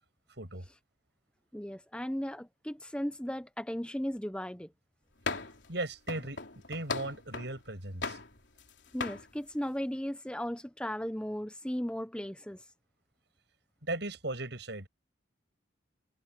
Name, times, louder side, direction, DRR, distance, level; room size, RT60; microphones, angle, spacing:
voice 1, 1.5-4.7 8.9-12.6, equal, 5° left, 0.9 m, -36 dB
sound 1, 5.2-5.7 6.1-7.6 8.0-8.7 9.0-9.2, left 4 dB, 70° left, 3.5 m, -37 dB
voice 2, 5.7-6.4 6.7-8.2 13.8-14.9, right 2 dB, 60° right, 7.4 m, -37 dB
head